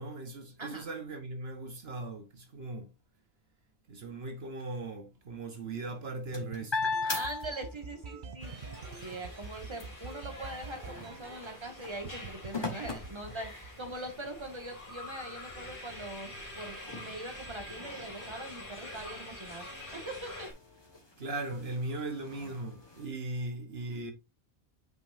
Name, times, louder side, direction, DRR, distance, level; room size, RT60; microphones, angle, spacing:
voice 1, 0.0-2.9 3.9-6.9 21.2-24.1, right 2 dB, 70° right, 1.4 m, -38 dB
sound 1, 5.8-8.2 8.6-14.0 14.7-14.8 15.1-23.1, left 3 dB, 25° left, 1.6 m, -41 dB
sound 2, 6.3-11.7 12.0-12.5 12.8-14.3, right 5 dB, 50° right, 0.8 m, -45 dB
voice 2, 7.1-8.5 9.0-20.5, right 1 dB, 25° right, 1.8 m, -42 dB
sound 3, 8.4-20.5, left 1 dB, 50° left, 2.8 m, -46 dB
8.5 x 5.2 x 2.6 m
omnidirectional pair, 1.1 m